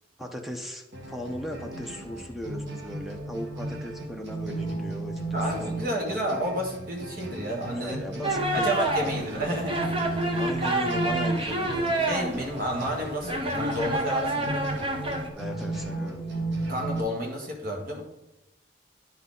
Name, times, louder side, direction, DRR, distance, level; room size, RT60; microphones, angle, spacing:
voice 1, 0.2-5.5 5.8-6.2 7.7-9.6 10.3-12.1 15.3-16.2, equal, ahead, 3 dB, 0.7 m, -37 dB
sound 1, 0.9-17.0, right 2 dB, 75° right, 1.4 m, -35 dB
voice 2, 5.3-8.1 8.5-9.9 12.0-14.7 16.7-18.0, equal, 55° right, 1 dB, 1.6 m, -31 dB
sound 2, 8.2-15.3, right 1 dB, 30° right, 0.9 m, -29 dB
10.0 x 4.0 x 3.8 m, 0.92 s
head